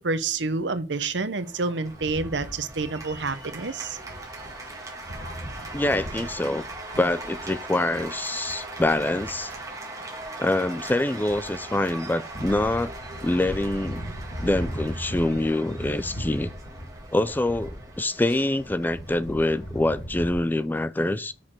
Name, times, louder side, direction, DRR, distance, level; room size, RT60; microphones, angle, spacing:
voice 1, 0.0-4.0, right 3 dB, 85° right, 0.9 m, -28 dB
Cheering / Applause, 1.4-20.6, right 2 dB, 20° right, 1.8 m, -40 dB
sound 1, 1.8-20.3, equal, 60° left, 2.1 m, -39 dB
voice 2, 5.7-6.6 7.0-9.5 10.4-12.9 13.2-14.0 14.4-16.5 17.1-21.3, left 1 dB, 10° left, 0.4 m, -25 dB
6.6 x 5.9 x 4.5 m
head